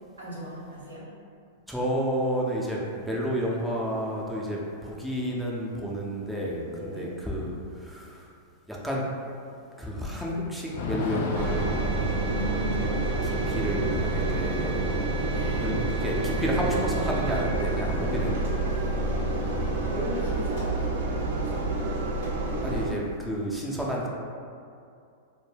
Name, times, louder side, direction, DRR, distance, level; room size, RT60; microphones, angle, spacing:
voice 1, 0.2-1.0 6.7-7.1 12.1-13.6 15.3-15.8 16.6-16.7 17.9-18.3 19.0-21.6, right 1 dB, 85° right, -7 dB, 0.9 m, -38 dB
voice 2, 1.7-8.3 8.7-9.0 9.8-12.3 12.8-12.9 13.2-14.9 15.6-18.5 19.5-19.8 22.6-24.1, equal, ahead, -4 dB, 0.5 m, -31 dB
Thunder / Rain, 10.7-18.6 18.9-19.0 19.2-20.6, left 2 dB, 60° left, 0.3 m, -38 dB
Engine, 11.3-22.9, right 2 dB, 65° right, 0.5 m, -28 dB
2.1 x 2.1 x 3.2 m, 2.4 s
hypercardioid pair, 105°, 0 cm